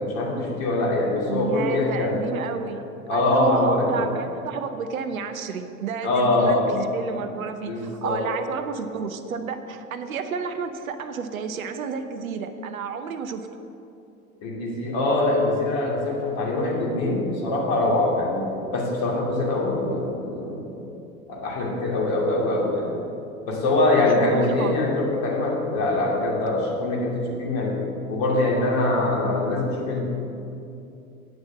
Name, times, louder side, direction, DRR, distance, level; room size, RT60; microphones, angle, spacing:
voice 1, 0.0-2.2 3.1-4.1 6.0-6.8 7.7-8.2 14.4-20.9 21.3-23.0 23.5-27.8 28.1-30.0, left 2 dB, 50° left, -2 dB, 2.6 m, -23 dB
voice 2, 1.3-13.5 24.0-24.8, right 6 dB, 70° right, 8 dB, 0.9 m, -31 dB
9.5 x 6.3 x 7.4 m, 2.7 s
figure-of-eight pair, 80°, 43 cm